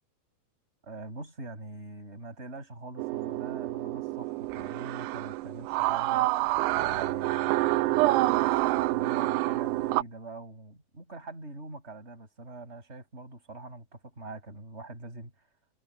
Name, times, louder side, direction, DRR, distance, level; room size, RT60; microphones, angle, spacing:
voice 1, 0.8-6.3 6.7-15.3, right 2 dB, 15° right, 7.5 m, -44 dB
sound 1, 3.0-10.0, right 18 dB, 80° right, 2.6 m, -27 dB
omnidirectional pair, 5.3 m